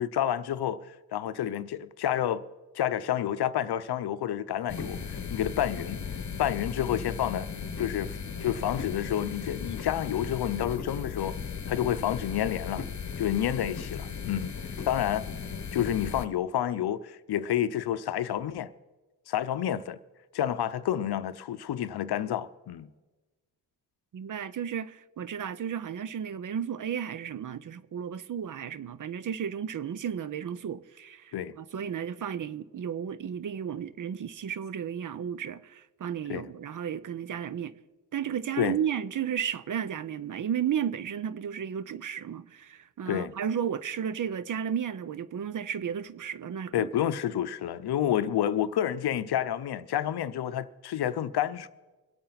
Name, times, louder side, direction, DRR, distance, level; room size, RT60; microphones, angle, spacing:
voice 1, 0.0-2.4 2.7-6.0 6.4-7.5 7.8-11.4 11.7-12.8 13.2-14.5 14.9-15.3 15.7-18.7 19.3-20.0 20.3-22.9 31.3-31.5 36.3-36.5 38.6-38.8 43.1-43.3 46.7-51.7, left 10 dB, 65° left, 0.7 m, -29 dB
sound 1, 4.7-16.3, left 6 dB, 40° left, 1.0 m, -37 dB
voice 2, 24.1-37.8 38.1-46.9, right 8 dB, 45° right, 0.6 m, -33 dB
23.5 x 8.6 x 4.0 m
cardioid pair, 75°, 43 cm